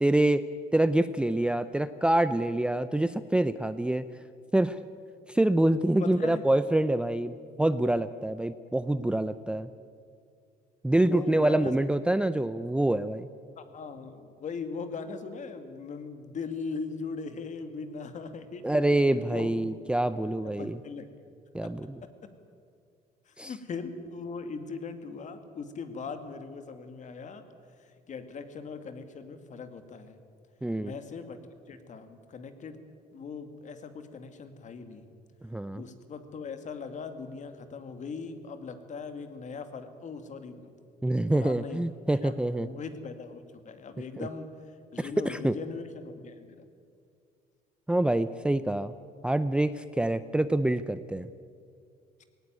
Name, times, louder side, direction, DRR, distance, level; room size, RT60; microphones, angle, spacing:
voice 1, 0.0-0.4 0.7-4.0 4.5-4.8 5.3-9.7 10.8-13.3 18.6-20.8 21.5-22.0 23.4-23.5 30.6-30.9 35.5-35.8 41.0-42.7 44.2-44.3 45.0-45.5 47.9-48.9 49.2-51.3, right 1 dB, 5° right, 13 dB, 0.5 m, -26 dB
voice 2, 6.0-6.4 11.1-11.7 13.6-19.5 20.4-21.1 21.6-21.7 22.0-22.1 23.3-27.4 27.8-30.2 30.8-31.4 31.7-32.8 33.1-35.1 35.8-40.7 41.3-44.5 44.9-46.6 52.2-52.3, left 5 dB, 45° left, 9 dB, 2.2 m, -40 dB
18.5 x 18.0 x 9.3 m, 2.3 s
cardioid pair, 110°, 17 cm